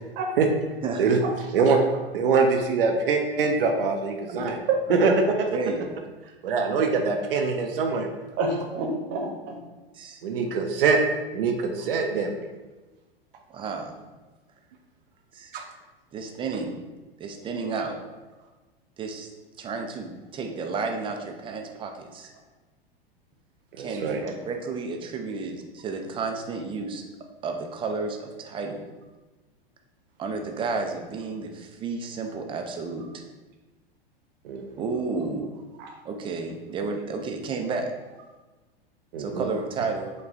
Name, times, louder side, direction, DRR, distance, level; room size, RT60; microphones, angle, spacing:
voice 1, 2.1-4.6 4.9-5.5 6.4-8.1 10.2-11.0 11.3-12.4 15.5-15.6 23.7-24.2 34.4-34.6 39.1-39.5, right 4 dB, 65° right, 3 dB, 0.6 m, -23 dB
voice 2, 4.3-5.1 8.4-9.6 35.8-35.9, right 3 dB, 40° right, 2 dB, 0.9 m, -28 dB
voice 3, 5.5-5.9 9.9-10.2 13.5-13.9 15.3-15.5 16.1-16.8 17.2-18.0 19.0-19.3 19.6-22.3 23.8-27.0 27.4-28.8 30.2-33.1 34.8-35.5 36.0-37.9 39.2-40.1, right 4 dB, 15° right, 3 dB, 0.5 m, -32 dB
4.9 x 2.3 x 3.9 m, 1.2 s
figure-of-eight pair, 95°, 30 cm